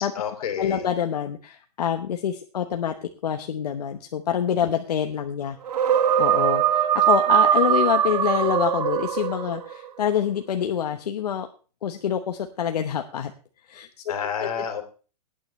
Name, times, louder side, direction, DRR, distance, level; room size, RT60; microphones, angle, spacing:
voice 1, 0.0-0.8 14.1-14.8, left 7 dB, 65° left, 8 dB, 2.8 m, -30 dB
voice 2, 0.5-2.9 3.2-5.6 5.8-11.5 11.8-13.3 13.6-13.9 14.4-14.5, left 8 dB, 85° left, 5 dB, 1.1 m, -26 dB
sound 1, 5.7-9.8, right 10 dB, 80° right, 1.1 m, -21 dB
18.5 x 9.1 x 3.3 m, 0.37 s
hypercardioid pair, 160°, 20 cm